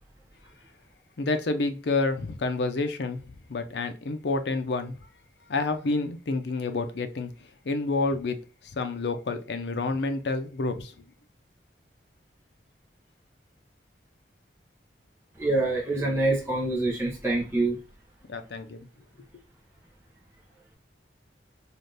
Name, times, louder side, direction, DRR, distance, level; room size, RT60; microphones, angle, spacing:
voice 1, 1.2-3.2 3.5-5.0 5.5-7.3 7.6-8.4 8.7-10.9 18.3-18.9, left 3 dB, 75° left, 7 dB, 0.5 m, -28 dB
voice 2, 15.4-17.8, right 2 dB, 15° right, -4 dB, 0.7 m, -25 dB
3.3 x 2.5 x 2.6 m, 0.35 s
head